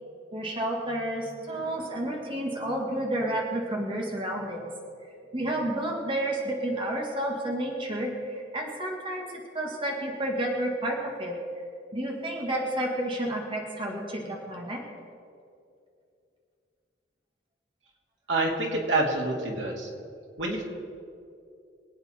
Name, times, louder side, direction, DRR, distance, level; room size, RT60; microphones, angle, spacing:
voice 1, 0.3-4.7 5.3-11.4 11.9-14.8, right 1 dB, 30° right, 0 dB, 1.9 m, -31 dB
voice 2, 18.3-19.9 20.4-20.6, right 2 dB, 90° right, -1 dB, 2.4 m, -27 dB
24.5 x 8.8 x 4.4 m, 2.5 s
head